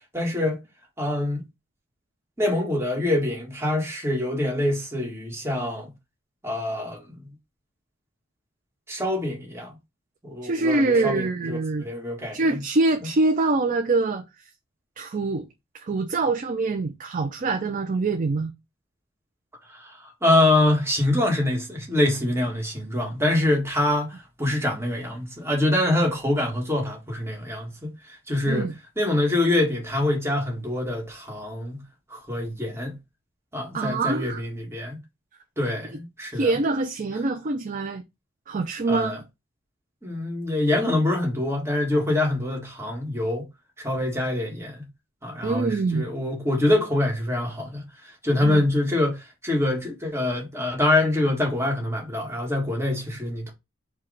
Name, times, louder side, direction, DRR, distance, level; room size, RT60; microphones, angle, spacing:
voice 1, 0.1-0.6 1.0-1.4 2.4-5.9 6.4-7.3 8.9-9.7 10.2-12.6 19.7-28.7 29.0-31.8 32.1-32.9 33.5-35.0 35.6-36.5 38.9-39.2 40.0-43.5 43.8-44.9 45.2-53.5, left 1 dB, 15° right, 1.6 m, -25 dB
voice 2, 10.4-11.9 12.3-14.2 15.0-15.5 15.7-18.5 28.5-28.7 33.7-34.4 36.3-38.0 38.5-39.2 45.4-46.1 48.4-48.7, right 3 dB, 40° right, 0.4 m, -24 dB
4.7 x 2.3 x 4.7 m
head